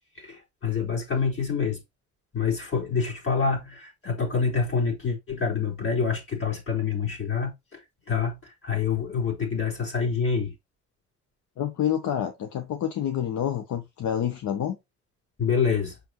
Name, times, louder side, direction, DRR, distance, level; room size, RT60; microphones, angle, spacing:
voice 1, 0.2-1.8 2.3-7.8 8.1-10.5 15.4-16.0, left 5 dB, 45° left, 4.5 m, -27 dB
voice 2, 11.6-14.8, left 10 dB, 70° left, 1.2 m, -28 dB
6.6 x 5.9 x 3.1 m
cardioid pair, 90°, 30 cm